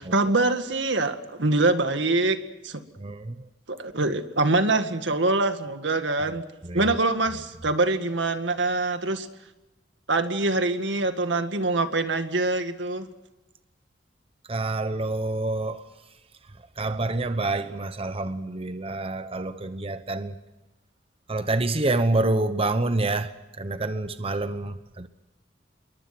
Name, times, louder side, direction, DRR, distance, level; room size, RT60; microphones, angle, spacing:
voice 1, 0.0-2.8 3.7-6.4 6.7-9.3 10.1-13.1, right 2 dB, 75° right, 2.0 m, -24 dB
voice 2, 3.0-3.5 6.6-6.9 14.5-15.9 16.8-20.4 21.3-25.1, right 2 dB, 30° right, 0.9 m, -27 dB
28.0 x 23.0 x 6.1 m
head